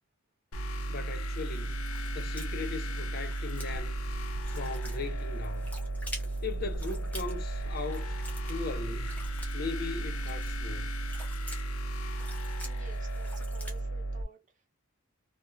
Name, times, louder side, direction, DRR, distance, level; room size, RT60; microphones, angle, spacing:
sound 1, 0.5-14.2, right 1 dB, 85° left, 0.6 m, -34 dB
voice 1, 0.9-1.8 2.1-4.0 4.5-5.7 6.4-8.2 8.5-9.2 9.5-10.9, left 4 dB, 45° left, 0.6 m, -38 dB
sound 2, 1.1-13.8, left 1 dB, 5° left, 0.8 m, -49 dB
sound 3, 1.7-13.9, right 1 dB, 65° right, 0.3 m, -49 dB
voice 2, 12.6-14.8, right 4 dB, 35° right, 0.8 m, -54 dB
2.9 x 2.4 x 2.7 m
head